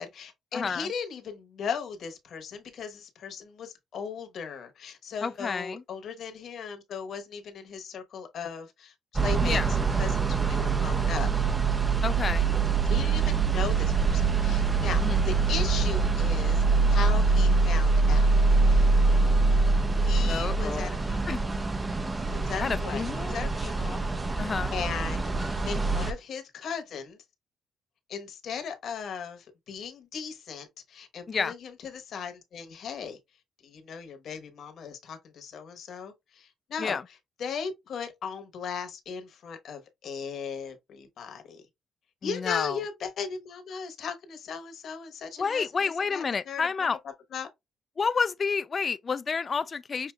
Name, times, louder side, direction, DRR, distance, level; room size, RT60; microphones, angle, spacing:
voice 1, 0.0-8.9 9.2-11.3 12.8-18.3 18.6-18.9 20.0-21.4 22.2-24.0 24.7-27.2 28.1-33.2 33.6-41.6 42.2-46.9 47.3-47.5, left 6 dB, 65° left, 1.0 m, -37 dB
voice 2, 0.5-0.9 5.2-5.8 9.4-9.7 12.0-12.5 15.0-15.2 20.3-20.9 21.3-21.4 22.6-23.3 24.4-24.7 31.3-31.5 36.8-37.0 42.2-42.8 45.4-47.0 48.0-50.1, left 5 dB, 40° left, 0.3 m, -29 dB
sound 1, 9.2-26.1, right 4 dB, 20° right, 0.5 m, -24 dB
5.7 x 2.6 x 2.3 m
cardioid pair, 90°, 0 cm